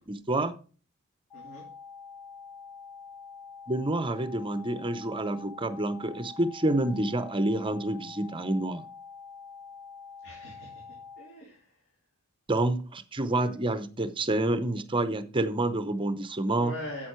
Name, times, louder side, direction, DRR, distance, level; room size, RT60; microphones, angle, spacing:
voice 1, 0.1-0.5 3.7-8.8 12.5-16.7, right 2 dB, 25° right, 11 dB, 0.7 m, -28 dB
voice 2, 1.3-1.6 10.2-10.8 11.2-11.6 16.5-17.1, left 1 dB, 60° left, -3 dB, 3.1 m, -41 dB
sound 1, 1.3-11.3, left 5 dB, 15° left, 1.7 m, -46 dB
9.3 x 7.5 x 4.5 m, 0.39 s
head